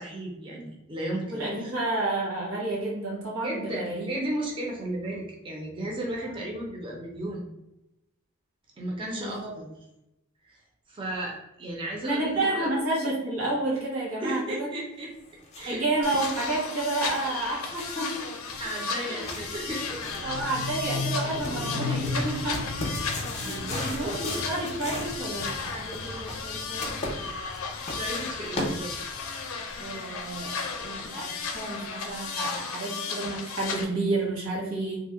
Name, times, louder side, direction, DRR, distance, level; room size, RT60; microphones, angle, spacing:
voice 1, 0.0-1.7 3.4-7.4 8.8-9.7 10.4-10.6 10.9-12.7 14.2-15.1 15.6-15.8 18.6-20.5 22.8-24.5 27.9-28.9, right 1 dB, 25° right, -1 dB, 0.5 m, -35 dB
voice 2, 1.3-4.3 6.2-6.5 9.1-9.5 12.0-14.7 15.7-18.2 19.1-19.3 20.2-22.6 23.3-27.3 29.8-35.0, right 2 dB, 85° right, -4 dB, 1.3 m, -30 dB
sound 1, 15.1-29.3, left 1 dB, 35° left, 0.6 m, -39 dB
sound 2, 16.0-33.8, left 5 dB, 80° left, 0.4 m, -35 dB
sound 3, 19.2-32.3, left 2 dB, 65° right, 0.8 m, -38 dB
2.7 x 2.0 x 3.4 m, 0.90 s
head